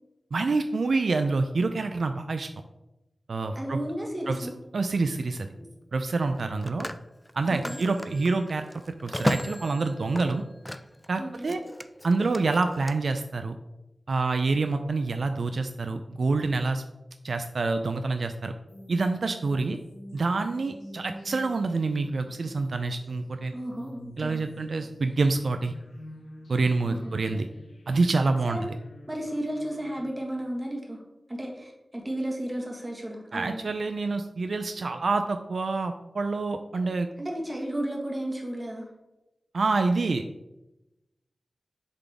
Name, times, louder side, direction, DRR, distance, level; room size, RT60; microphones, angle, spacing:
voice 1, 0.3-2.5 3.3-3.8 4.3-5.5 5.9-6.9 7.3-8.6 9.0-10.4 11.1-11.6 12.0-13.6 14.1-16.8 17.2-18.5 18.9-19.8 20.1-23.5 24.2-25.7 26.5-27.5 27.9-28.6 33.3-37.1 39.5-40.2, right 3 dB, 75° right, 7 dB, 0.3 m, -27 dB
voice 2, 3.5-4.5 5.6-5.7 7.5-7.8 11.2-11.5 23.5-24.4 26.8-27.4 28.4-28.7 29.1-31.0 31.3-33.7 37.2-38.9, right 1 dB, 25° right, -1 dB, 1.5 m, -34 dB
Telephone, 4.0-4.3 6.2-11.1 11.4-12.9, left 1 dB, 10° left, 0.3 m, -35 dB
sound 1, 18.7-30.0, left 1 dB, 80° left, 1.1 m, -46 dB
7.2 x 3.8 x 3.4 m, 0.97 s
wide cardioid pair, 85°, 0 cm